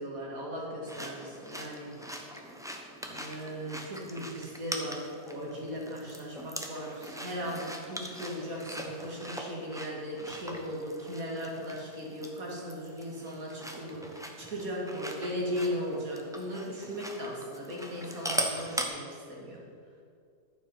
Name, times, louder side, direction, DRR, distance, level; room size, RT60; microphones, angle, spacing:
voice 1, 0.0-1.9 3.1-19.6, equal, 60° right, -3 dB, 2.7 m, -37 dB
sound 1, 0.9-18.9, equal, 5° right, 0.6 m, -41 dB
12.0 x 7.2 x 5.7 m, 2.3 s
omnidirectional pair, 1.7 m